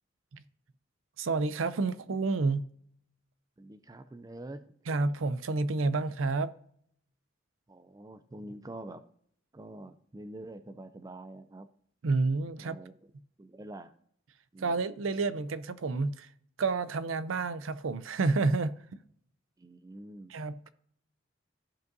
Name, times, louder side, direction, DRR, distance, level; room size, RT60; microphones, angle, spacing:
voice 1, 1.2-2.6 4.9-6.5 12.0-12.8 14.6-16.3 16.6-18.7 20.3-20.7, right 3 dB, 85° right, 0.5 m, -29 dB
voice 2, 3.6-4.6 7.7-9.0 9.5-11.7 12.6-13.1 13.4-13.9 14.5-14.8 19.6-20.3, right 1 dB, 20° right, 0.4 m, -46 dB
14.5 x 5.3 x 2.6 m
head